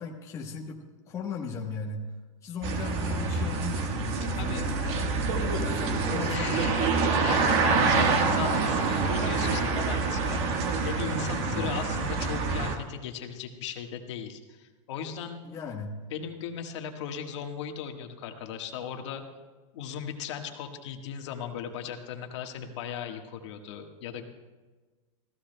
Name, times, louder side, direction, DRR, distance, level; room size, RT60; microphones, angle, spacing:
voice 1, 0.0-2.1 2.4-5.1 5.4-6.7 11.4-11.8 15.4-16.0, left 4 dB, 20° left, -1 dB, 1.1 m, -37 dB
sound 1, 2.6-12.8, right 4 dB, 35° right, 1.4 m, -26 dB
voice 2, 6.3-15.4 16.1-19.2 19.7-24.3, left 7 dB, 60° left, 4 dB, 1.5 m, -37 dB
28.5 x 15.5 x 2.2 m, 1.3 s
supercardioid pair, 160°, 17 cm